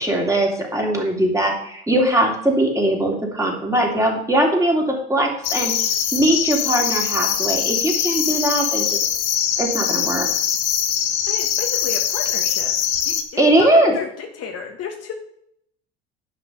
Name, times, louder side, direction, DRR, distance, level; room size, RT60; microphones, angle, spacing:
voice 1, 0.0-4.8 5.1-5.7 6.1-9.0 9.6-10.3 13.4-13.9, right 1 dB, 10° right, 0 dB, 3.0 m, -20 dB
Desert Night Air With Bird Call, 5.4-13.2, left 9 dB, 65° left, 1.3 m, -22 dB
voice 2, 11.3-12.7 13.0-13.1 13.6-15.1, left 5 dB, 50° left, 3 dB, 1.6 m, -32 dB
10.0 x 5.6 x 5.6 m, 0.70 s
hypercardioid pair, 65°, 32 cm